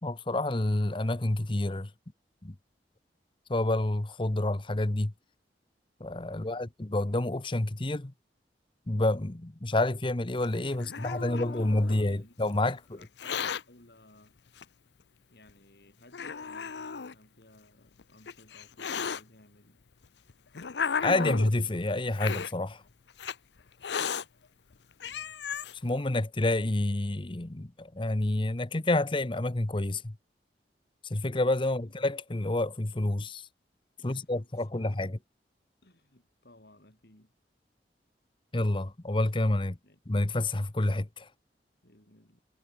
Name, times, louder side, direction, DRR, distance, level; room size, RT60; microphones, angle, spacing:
voice 1, 0.0-1.9 2.4-2.5 3.5-5.1 6.0-8.1 8.9-13.0 21.0-22.8 25.8-30.2 31.1-33.5 34.0-35.2 38.5-39.8 40.1-41.3, left 2 dB, 30° left, 0.9 m, -28 dB
voice 2, 6.3-6.7 10.8-14.4 15.3-19.8 25.0-25.4 31.8-31.9 34.0-35.1 35.8-37.3 39.6-40.0 41.8-42.4, left 1 dB, 60° left, 4.6 m, -58 dB
Hiss, 10.4-12.1 13.0-13.6 14.6-14.7 15.5-15.6 16.1-17.1 18.0-19.2 20.0-21.6 22.1-22.5 23.2-23.4 23.8-24.2 24.7-24.8 25.0-25.7, left 6 dB, 80° left, 0.7 m, -34 dB
head